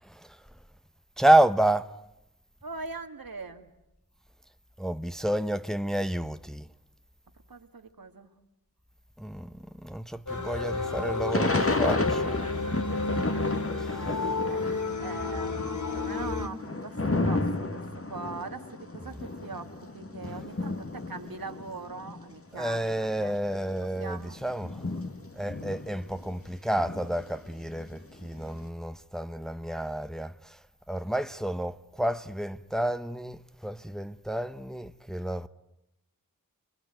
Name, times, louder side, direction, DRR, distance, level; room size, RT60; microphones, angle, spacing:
voice 1, 0.0-0.4 1.2-1.9 4.8-6.7 9.2-12.3 13.8-14.2 22.5-24.9 25.4-30.6 30.9-35.5, right 1 dB, ahead, 1.0 m, -29 dB
voice 2, 2.6-3.7 7.5-8.3 14.4-24.4, right 4 dB, 80° right, 2.3 m, -41 dB
sound 1, 10.3-16.5, left 3 dB, 60° left, 2.8 m, -31 dB
Thunder / Rain, 11.3-15.0 15.3-22.3 22.9-23.0 23.2-26.4 26.8-28.5, left 2 dB, 40° left, 2.1 m, -32 dB
29.0 x 22.0 x 9.2 m
wide cardioid pair, 45°, 34 cm